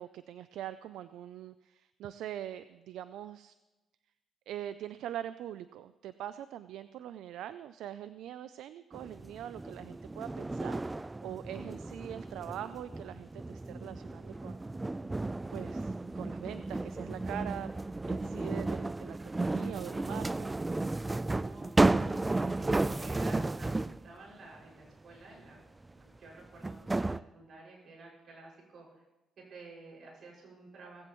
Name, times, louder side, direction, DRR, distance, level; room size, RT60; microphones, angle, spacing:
voice 1, 0.0-3.5 4.5-14.6 15.5-17.7 18.1-20.5, right 11 dB, 85° right, 13 dB, 0.4 m, -43 dB
sound 1, 8.9-24.1 25.8-25.9 26.6-27.2, right 2 dB, 15° right, 0.3 m, -33 dB
voice 2, 21.3-25.6 25.9-29.0 29.4-31.1, right 2 dB, 65° right, -3 dB, 6.0 m, -52 dB
18.0 x 15.5 x 3.1 m, 1.1 s
cardioid pair, 90°, 0 cm